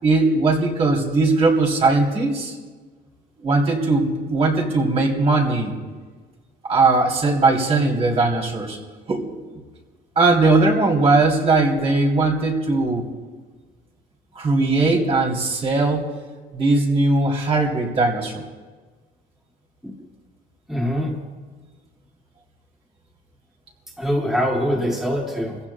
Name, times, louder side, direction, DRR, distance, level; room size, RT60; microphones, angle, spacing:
voice 1, 0.0-2.6 3.4-5.7 6.6-8.8 9.1-9.2 10.2-13.0 14.3-16.1 16.5-18.4, right 3 dB, 35° right, -1 dB, 3.0 m, -19 dB
voice 2, 20.7-21.2 24.0-25.6, equal, ahead, -3 dB, 2.0 m, -23 dB
29.0 x 16.0 x 2.2 m, 1.4 s
cardioid pair, 110°, 17 cm